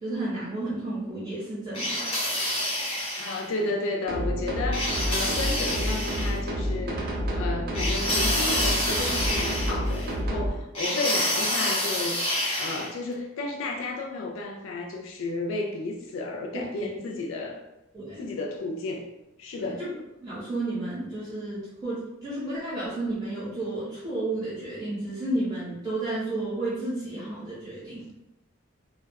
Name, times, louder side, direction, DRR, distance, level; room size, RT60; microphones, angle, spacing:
voice 1, 0.0-2.0 16.5-16.9 17.9-18.3 19.6-19.9 20.2-28.0, right 2 dB, 20° right, -11 dB, 0.8 m, -32 dB
sound 1, 1.7-3.5 4.7-6.4 7.7-10.1 10.7-12.9, left 1 dB, 25° left, 0.8 m, -28 dB
voice 2, 3.2-12.2 12.6-17.6 18.2-19.1 19.4-19.8, left 2 dB, 70° left, 1 dB, 0.3 m, -32 dB
sound 2, 4.1-10.5, equal, 45° right, 0.5 m, -29 dB
2.2 x 2.1 x 3.3 m, 0.93 s
head